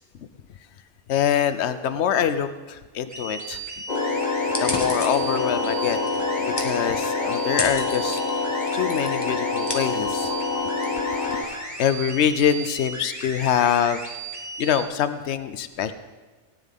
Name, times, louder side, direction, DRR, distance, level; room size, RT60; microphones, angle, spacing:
voice 1, 1.1-3.6 4.6-6.0 6.4-8.2 8.7-10.3 11.0-14.0 14.6-15.9, left 9 dB, 75° left, 11 dB, 0.9 m, -24 dB
sound 1, 3.1-14.8, right 3 dB, 15° right, 1.7 m, -36 dB
sound 2, 3.9-11.4, left 3 dB, 40° left, 1.5 m, -26 dB
sound 3, 4.4-12.2, left 2 dB, 20° left, 1.2 m, -36 dB
17.5 x 9.9 x 3.6 m, 1.3 s
omnidirectional pair, 1.2 m